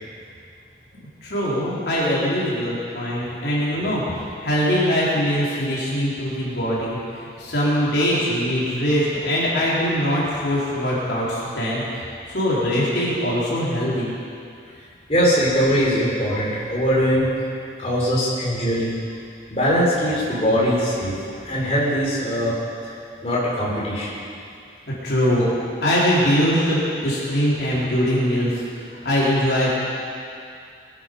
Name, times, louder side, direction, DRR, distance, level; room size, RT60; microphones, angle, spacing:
voice 1, 1.2-4.0 4.4-14.1 25.0-25.5 25.8-28.5 28.8-29.7, equal, 75° left, -7 dB, 4.0 m, -22 dB
voice 2, 15.1-17.3 17.8-18.9 19.5-21.1 21.4-22.6 23.2-24.1, equal, 35° left, -7 dB, 4.1 m, -21 dB
21.5 x 9.9 x 5.4 m, 2.4 s
head